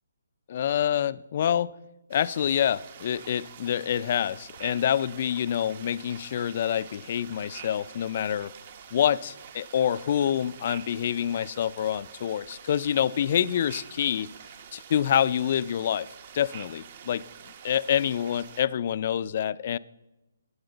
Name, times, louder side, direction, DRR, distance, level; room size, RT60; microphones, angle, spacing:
voice 1, 0.5-1.7 2.1-8.5 8.9-14.3 14.7-16.1 16.3-17.2 17.6-19.8, left 9 dB, 40° left, 17 dB, 0.4 m, -26 dB
sound 1, 2.1-18.6, right 8 dB, 40° right, 0.8 m, -47 dB
16.5 x 9.6 x 3.9 m, 1.0 s
hypercardioid pair, 160°, 0 cm